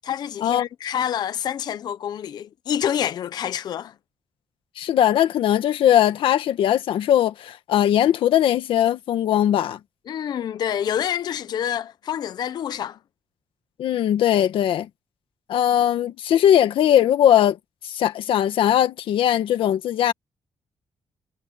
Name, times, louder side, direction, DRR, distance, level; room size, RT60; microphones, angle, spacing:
voice 1, 0.0-3.9 10.1-13.0, left 9 dB, 50° left, 0.6 m, -27 dB
voice 2, 4.8-9.8 13.8-14.9 15.5-17.6 17.8-20.1, left 11 dB, 85° left, 1.7 m, -19 dB
wide cardioid pair, 170°, 9 cm